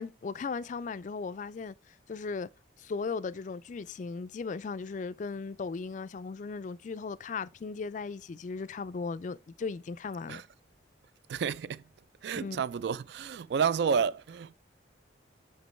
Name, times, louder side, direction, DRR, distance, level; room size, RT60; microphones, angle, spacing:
voice 1, 0.0-1.7 2.1-2.5 2.8-10.4 12.4-12.6, left 4 dB, 40° left, 0.3 m, -37 dB
voice 2, 11.3-11.8 12.2-14.5, right 6 dB, 60° right, 0.3 m, -30 dB
6.2 x 5.2 x 3.1 m
head